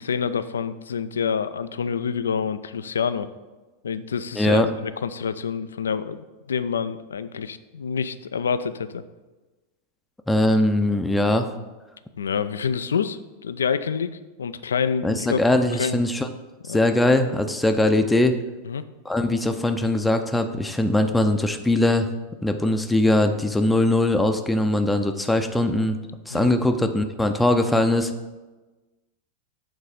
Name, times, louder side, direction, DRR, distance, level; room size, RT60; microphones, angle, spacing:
voice 1, 0.0-3.3 3.8-9.0 12.2-15.4 15.8-16.0 16.6-16.8 18.6-18.8 26.3-26.6, left 6 dB, 70° left, 13 dB, 0.3 m, -27 dB
voice 2, 4.4-4.7 10.3-11.5 15.0-16.3 16.7-18.4 19.1-22.1 22.4-26.0 26.3-28.1, left 1 dB, 5° left, 7 dB, 0.5 m, -21 dB
7.9 x 4.0 x 5.0 m, 1.2 s
figure-of-eight pair, 90°, 0 cm